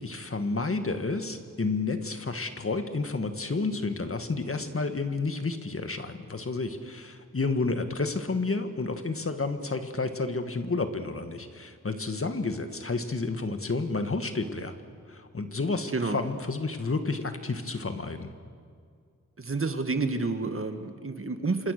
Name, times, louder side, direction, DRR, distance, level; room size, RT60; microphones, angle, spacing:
voice 1, 0.0-14.7 15.1-18.3, left 3 dB, 45° left, 7 dB, 1.8 m, -30 dB
voice 2, 19.4-21.7, right 3 dB, 45° right, 7 dB, 1.8 m, -29 dB
26.5 x 25.5 x 6.8 m, 2.2 s
wide cardioid pair, 85°, 31 cm